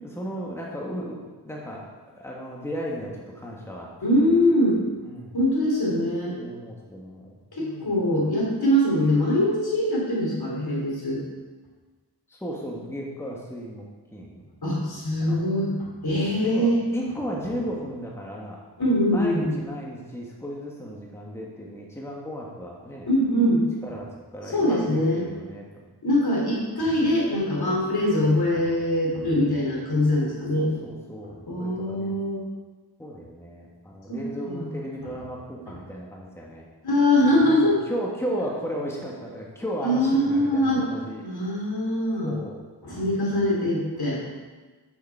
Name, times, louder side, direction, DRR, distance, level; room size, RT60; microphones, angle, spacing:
voice 1, 0.0-1.8 2.1-3.9 4.2-4.4 5.0-5.4 6.4-7.3 7.6-8.0 12.3-14.4 15.2-15.4 16.2-18.6 19.1-23.1 23.8-24.1 24.3-25.9 30.5-32.2 33.0-36.6 37.4-41.2 42.2-42.6 44.0-44.3, equal, 5° left, -3 dB, 1.5 m, -35 dB
voice 2, 4.0-4.8 5.3-6.4 7.5-11.2 14.6-16.8 18.8-19.6 23.1-23.6 24.5-25.3 26.0-30.7 31.2-32.4 34.1-34.7 35.7-35.8 36.8-37.8 39.8-40.9 41.2-42.3 42.8-44.2, left 1 dB, 60° left, -4 dB, 3.0 m, -23 dB
8.3 x 6.9 x 4.7 m, 1.3 s
wide cardioid pair, 50°, 42 cm